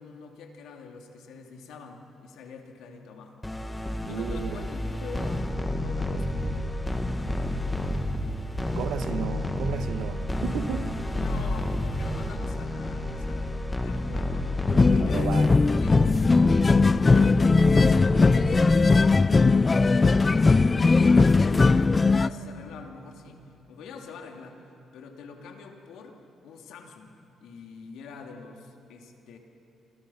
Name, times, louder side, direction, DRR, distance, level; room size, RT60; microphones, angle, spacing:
voice 1, 0.0-3.4 4.0-6.7 11.1-14.5 14.9-16.3 16.9-21.8 22.1-23.4 23.7-29.4, left 4 dB, 85° left, 3.0 m, -44 dB
sound 1, 3.4-18.8, left 1 dB, 10° left, 2.0 m, -30 dB
voice 2, 4.0-4.6 8.7-11.0 14.9-15.6, right 9 dB, 80° right, 1.2 m, -34 dB
sound 2, 14.7-22.3, left 3 dB, 30° left, 0.5 m, -19 dB
28.5 x 27.0 x 5.9 m
cardioid pair, 90°, 0 cm